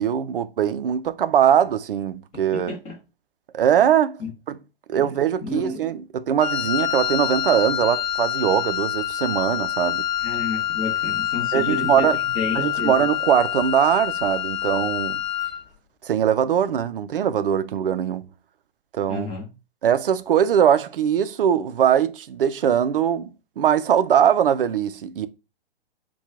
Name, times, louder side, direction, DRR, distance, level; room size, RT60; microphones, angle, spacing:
voice 1, 0.0-2.7 3.5-4.2 4.5-4.6 4.9-10.1 11.5-12.2 12.6-15.2 16.0-18.3 18.9-19.3 19.8-23.3 23.6-25.3, right 9 dB, 60° right, 0.5 m, -21 dB
voice 2, 2.5-3.0 4.2-4.3 4.9-5.1 5.4-5.8 10.2-12.9 19.1-19.5, left 3 dB, 15° left, 1.0 m, -31 dB
Wind instrument woodwind instrument, 6.4-15.6, left 11 dB, 45° left, 0.4 m, -26 dB
4.3 x 2.3 x 3.5 m
figure-of-eight pair, 115°, 31 cm